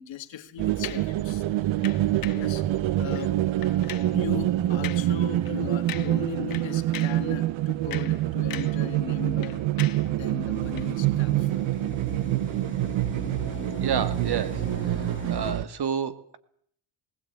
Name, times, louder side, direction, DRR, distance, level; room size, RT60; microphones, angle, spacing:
voice 1, 0.0-1.4 2.3-3.5 4.1-9.7 10.1-11.7, left 10 dB, 65° left, 2.1 m, -38 dB
sound 1, 0.6-15.6, right 14 dB, 70° right, 1.1 m, -26 dB
sound 2, 0.8-1.1 1.8-2.5 3.1-3.3 3.6-4.2 4.8-5.1 5.4-5.6 5.9-6.2 6.5-7.3 7.7-8.9 9.1-10.1 10.7-10.9, left 11 dB, 45° left, 0.9 m, -40 dB
sound 3, 10.5-15.5, left 4 dB, 25° left, 2.6 m, -41 dB
voice 2, 13.8-14.6 14.9-16.4, right 7 dB, 50° right, 2.0 m, -30 dB
20.0 x 16.5 x 8.8 m
cardioid pair, 85°, 48 cm